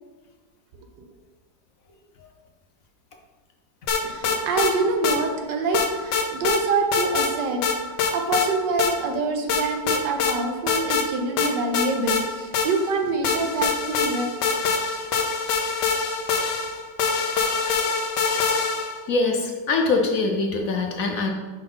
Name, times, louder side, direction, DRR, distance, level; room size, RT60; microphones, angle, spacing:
sound 1, 3.9-4.7 5.0-5.2 5.7-6.6 6.9-7.3 7.6-8.5 8.8-8.9 9.5-10.4 10.7-11.1 11.4-12.9 13.2-19.0, left 5 dB, 80° left, 1.4 m, -24 dB
voice 1, 4.0-7.6 8.1-14.3, right 3 dB, 85° right, 5 dB, 1.4 m, -26 dB
voice 2, 19.1-21.3, left 3 dB, 60° left, 3 dB, 1.0 m, -23 dB
8.8 x 3.8 x 3.9 m, 1.3 s
omnidirectional pair, 1.9 m